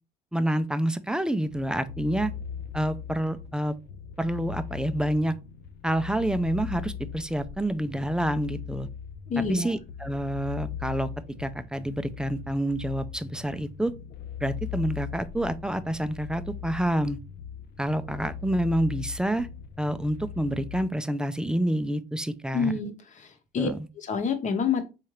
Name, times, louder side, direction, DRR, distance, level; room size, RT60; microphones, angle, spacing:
voice 1, 0.3-2.3 2.7-3.7 4.2-5.4 5.8-8.9 9.5-11.1 11.4-13.9 14.4-17.2 17.8-19.5 19.8-22.8 23.6-23.8, right 1 dB, 5° right, 0.4 m, -28 dB
sound 1, 1.5-20.8, left 8 dB, 70° left, 0.6 m, -39 dB
voice 2, 9.3-9.7 22.5-23.7 24.0-24.8, left 5 dB, 45° left, 1.0 m, -27 dB
4.4 x 3.7 x 3.1 m
cardioid pair, 110°, 17 cm